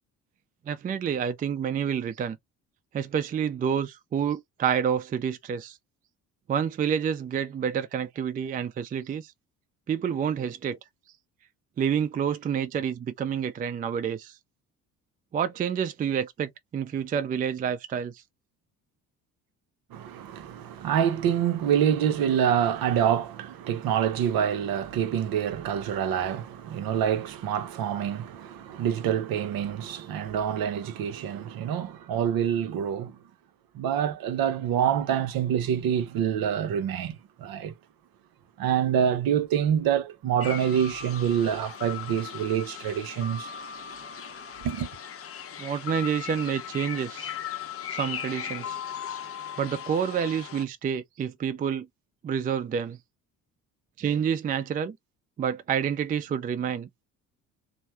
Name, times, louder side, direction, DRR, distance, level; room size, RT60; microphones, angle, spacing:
voice 1, 0.7-2.4 2.9-5.8 6.5-9.3 9.9-10.8 11.8-14.4 15.3-18.2 45.6-47.3 47.9-48.8 49.6-51.9 52.2-53.0 54.0-55.0 55.4-56.9, right 8 dB, 20° right, 0.4 m, -28 dB
voice 2, 19.9-33.2 33.7-37.7 38.6-43.5 44.6-44.9, right 9 dB, 50° right, 0.7 m, -26 dB
sound 1, 40.4-50.7, left 8 dB, 30° left, 0.7 m, -38 dB
3.1 x 2.1 x 2.9 m
figure-of-eight pair, 50°, 46 cm